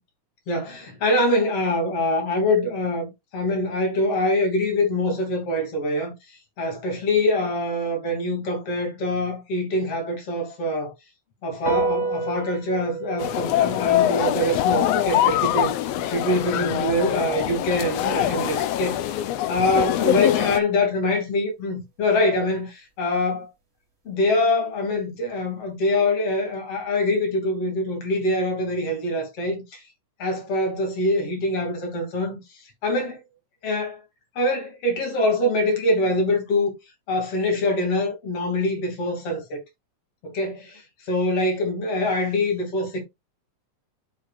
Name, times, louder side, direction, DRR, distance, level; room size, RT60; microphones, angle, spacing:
voice 1, 0.5-6.1 6.6-10.9 11.4-19.2 19.5-23.5 24.1-29.8 30.2-32.4 32.8-33.2 33.6-34.0 34.4-36.7 37.1-39.6 40.2-40.8 41.1-43.0, left 1 dB, 50° left, 3.6 m, -24 dB
sound 1, 11.7-18.4, right 4 dB, 25° right, 1.6 m, -33 dB
sound 2, 13.2-20.6, left 13 dB, 75° left, 1.5 m, -23 dB
11.5 x 4.9 x 2.5 m
omnidirectional pair, 3.6 m